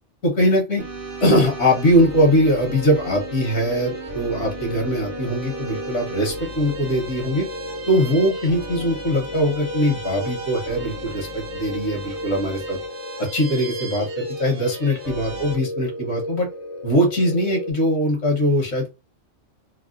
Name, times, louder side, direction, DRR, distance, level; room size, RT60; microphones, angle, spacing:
voice 1, 0.2-0.8 1.2-7.4 7.9-12.8 13.2-16.5 16.8-18.9, equal, 80° left, 0 dB, 1.5 m, -21 dB
sound 1, 0.8-15.6, right 3 dB, 40° right, 0.5 m, -36 dB
sound 2, 2.0-17.7, left 1 dB, 50° left, 0.5 m, -34 dB
4.0 x 2.1 x 2.5 m, 0.25 s
omnidirectional pair, 1.3 m